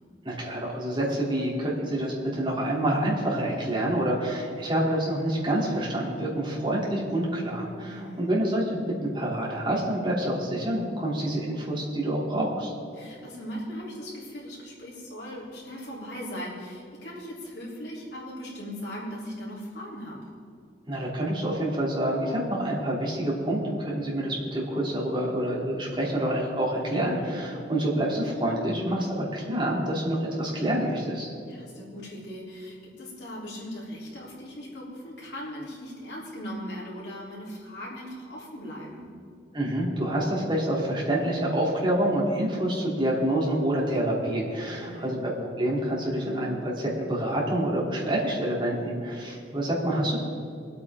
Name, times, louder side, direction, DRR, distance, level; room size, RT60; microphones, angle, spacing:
voice 1, 0.2-12.7 20.9-31.3 39.5-50.2, right 1 dB, 25° right, -5 dB, 2.9 m, -27 dB
voice 2, 7.8-8.4 13.0-20.2 31.4-39.1 44.7-45.2, equal, 70° left, -5 dB, 3.6 m, -39 dB
23.5 x 8.5 x 3.7 m, 2.5 s
head